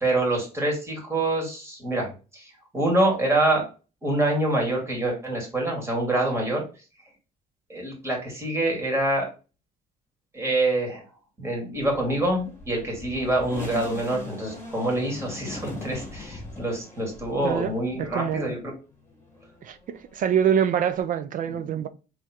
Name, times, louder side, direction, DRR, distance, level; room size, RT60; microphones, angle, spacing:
voice 1, 0.0-2.1 2.3-3.6 4.0-6.6 7.7-9.3 10.3-11.0 11.4-18.7, right 1 dB, 15° right, 2.3 m, -26 dB
sound 1, 11.8-18.6 19.1-21.0, left 2 dB, 15° left, 2.1 m, -40 dB
voice 2, 17.4-17.7 18.0-18.5 19.6-21.9, right 8 dB, 55° right, 0.4 m, -25 dB
3.6 x 3.3 x 4.2 m
cardioid pair, 110°, 17 cm